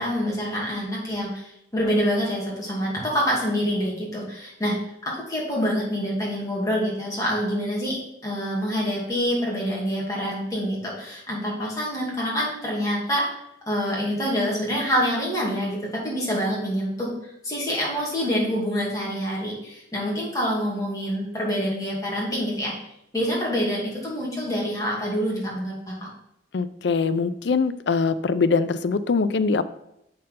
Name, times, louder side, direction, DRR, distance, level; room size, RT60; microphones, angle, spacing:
voice 1, 0.0-4.8 5.0-13.3 13.7-17.1 17.4-22.7 23.1-26.0, equal, 20° left, -4 dB, 2.4 m, -26 dB
voice 2, 26.5-29.6, left 4 dB, 75° left, 14 dB, 0.5 m, -22 dB
7.5 x 4.4 x 5.4 m, 0.80 s
head